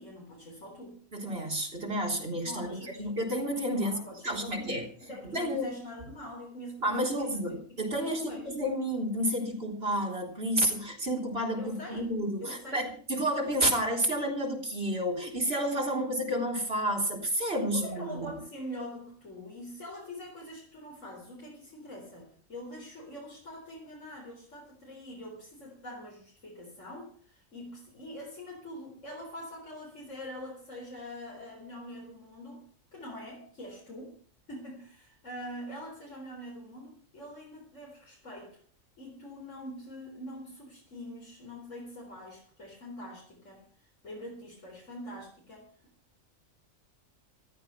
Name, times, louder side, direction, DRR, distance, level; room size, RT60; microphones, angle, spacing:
voice 1, 0.0-1.0 2.4-3.1 3.7-4.7 5.0-7.4 7.7-8.6 11.5-12.1 12.4-12.8 17.7-32.7 32.9-34.2 34.5-38.6 39.0-43.7 44.0-45.7, equal, 70° left, -3 dB, 4.6 m, -44 dB
voice 2, 1.1-4.0 4.2-5.7 6.8-18.4, equal, 50° right, 1 dB, 4.1 m, -30 dB
15.5 x 13.0 x 5.7 m, 0.44 s
omnidirectional pair, 1.4 m